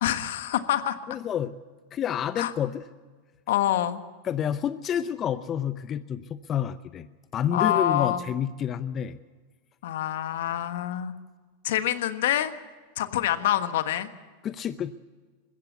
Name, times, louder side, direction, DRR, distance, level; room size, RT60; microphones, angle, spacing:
voice 1, 0.0-1.0 2.4-2.5 3.5-4.0 7.5-8.2 9.8-11.1 11.6-12.5 13.0-14.1, left 12 dB, 70° left, 10 dB, 1.4 m, -26 dB
voice 2, 1.1-1.6 1.9-2.8 4.2-7.1 7.3-9.2 14.4-14.9, left 9 dB, 35° left, 13 dB, 0.7 m, -29 dB
21.0 x 16.0 x 8.1 m, 1.4 s
hypercardioid pair, 105°, 0 cm